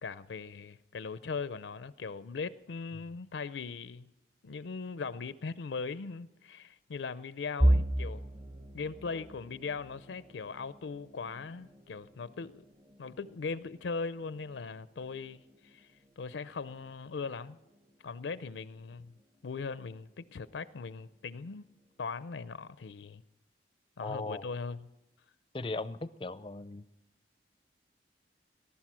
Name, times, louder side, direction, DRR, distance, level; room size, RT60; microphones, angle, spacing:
voice 1, 0.0-4.1 4.4-8.2 8.7-12.7 13.0-15.9 16.2-17.6 18.0-19.1 19.4-21.7 22.0-23.2 24.0-24.9, left 4 dB, 85° left, 0.5 m, -39 dB
sound 1, 7.6-19.4 19.9-20.1 20.5-20.7 21.5-22.0, right 1 dB, 20° right, 0.8 m, -36 dB
voice 2, 24.0-24.5 25.5-26.8, left 2 dB, 30° left, 0.4 m, -38 dB
18.5 x 12.0 x 6.1 m
head